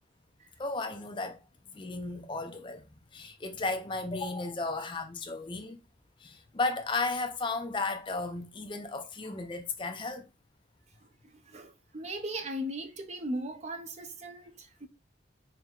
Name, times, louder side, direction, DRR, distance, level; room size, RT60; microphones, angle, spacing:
voice 1, 0.6-1.4 1.7-2.8 3.1-5.8 6.2-10.2, left 3 dB, 25° left, 0.5 m, -34 dB
voice 2, 11.2-14.9, right 1 dB, 35° right, 0.5 m, -38 dB
4.4 x 2.1 x 3.7 m
head